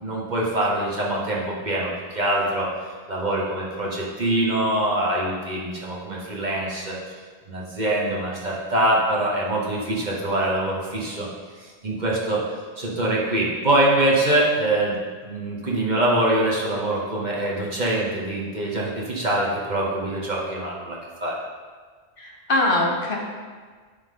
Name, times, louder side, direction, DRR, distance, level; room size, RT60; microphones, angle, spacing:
voice 1, 0.0-2.7 3.1-7.0 7.5-11.3 11.6-12.4 12.8-15.0 15.2-21.4, right 1 dB, 45° right, -4 dB, 1.3 m, -24 dB
voice 2, 22.2-23.1, left 1 dB, 55° left, -1 dB, 1.2 m, -22 dB
11.0 x 3.7 x 3.7 m, 1.5 s
omnidirectional pair, 1.1 m